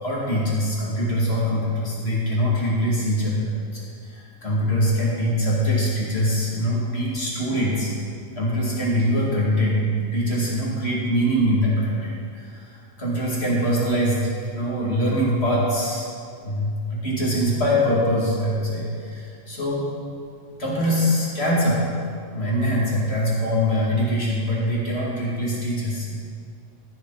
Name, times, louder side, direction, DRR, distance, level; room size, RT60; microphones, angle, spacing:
voice 1, 0.0-7.9 8.4-14.3 14.6-19.9 20.6-21.9 22.3-26.2, equal, 45° left, -6 dB, 2.4 m, -23 dB
14.5 x 6.6 x 4.0 m, 2.3 s
omnidirectional pair, 1.5 m